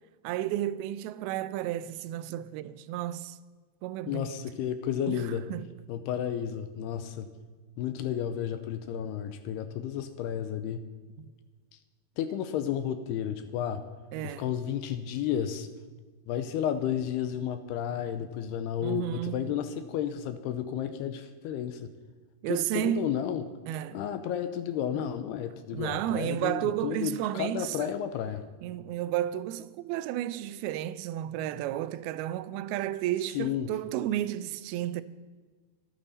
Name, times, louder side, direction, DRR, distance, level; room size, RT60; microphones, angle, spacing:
voice 1, 0.2-3.4 3.8-4.4 5.1-5.7 11.2-11.3 14.1-14.5 18.8-19.5 22.4-23.1 23.7-24.0 25.7-27.9 28.6-35.0, right 12 dB, 80° right, 2.3 m, -32 dB
voice 2, 4.1-5.4 5.9-7.3 7.8-10.8 12.2-13.8 14.2-15.7 16.3-21.9 22.5-23.4 23.9-28.4 33.4-33.7, left 9 dB, 80° left, 2.6 m, -32 dB
26.0 x 9.0 x 4.1 m
omnidirectional pair, 4.9 m